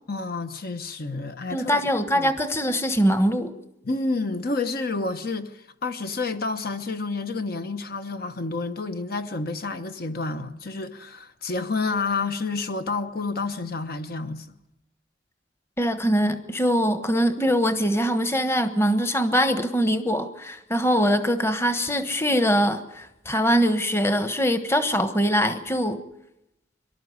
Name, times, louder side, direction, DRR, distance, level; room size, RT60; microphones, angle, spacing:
voice 1, 0.1-1.8 2.1-2.3 3.8-14.6, left 3 dB, 50° left, 1.0 m, -29 dB
voice 2, 1.5-3.5 15.8-26.0, equal, 15° left, 1.2 m, -22 dB
24.0 x 12.5 x 9.6 m
head